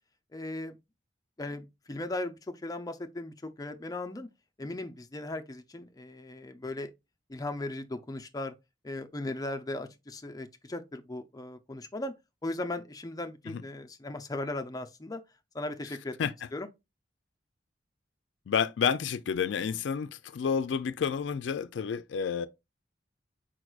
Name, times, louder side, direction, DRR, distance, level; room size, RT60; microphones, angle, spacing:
voice 1, 0.3-0.8 1.4-4.3 4.6-6.9 7.3-8.5 8.8-12.1 12.4-15.2 15.5-16.7, left 2 dB, 20° left, 0.5 m, -37 dB
voice 2, 18.5-22.5, left 7 dB, 85° left, 0.4 m, -30 dB
4.6 x 4.5 x 2.4 m
head